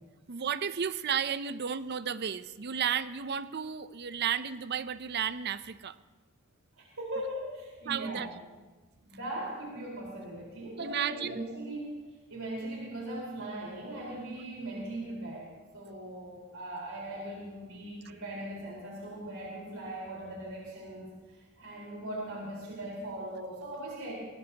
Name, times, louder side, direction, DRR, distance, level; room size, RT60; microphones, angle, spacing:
voice 1, 0.3-6.0 7.9-8.3 10.8-11.4, right 8 dB, 50° right, 14 dB, 0.5 m, -33 dB
voice 2, 6.8-8.3 9.0-12.0 12.3-15.5 15.7-24.1, right 1 dB, 65° right, -4 dB, 4.4 m, -39 dB
20.0 x 19.5 x 2.9 m, 1.3 s
head